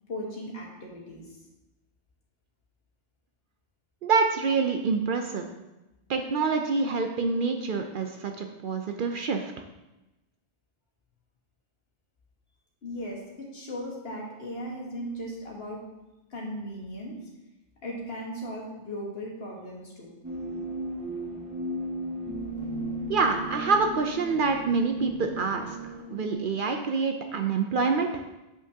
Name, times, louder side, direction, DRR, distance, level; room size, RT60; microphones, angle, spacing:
voice 1, 0.1-1.3 12.8-15.8 16.3-17.1 17.8-20.1, equal, 65° left, -3 dB, 1.7 m, -37 dB
voice 2, 4.0-5.5 6.1-9.5 23.1-28.2, right 4 dB, 60° right, 5 dB, 0.6 m, -26 dB
sound 1, 20.2-26.3, right 1 dB, 15° right, 1.3 m, -35 dB
7.5 x 5.6 x 2.8 m, 1.0 s
omnidirectional pair, 1.1 m